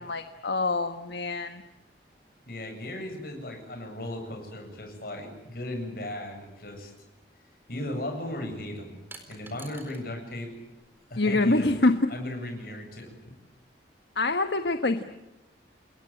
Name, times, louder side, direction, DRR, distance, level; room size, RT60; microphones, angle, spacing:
voice 1, 0.0-1.6 11.2-12.1 14.1-15.0, left 2 dB, 75° left, 8 dB, 1.4 m, -25 dB
voice 2, 2.5-6.9 7.7-9.0 9.3-10.5 11.1-11.8 12.1-13.1, left 1 dB, 55° left, 4 dB, 7.8 m, -36 dB
sound 1, 7.2-7.3 9.1-10.1 10.4-11.3, right 3 dB, 10° right, 4.3 m, -49 dB
29.5 x 22.0 x 8.9 m, 0.96 s
head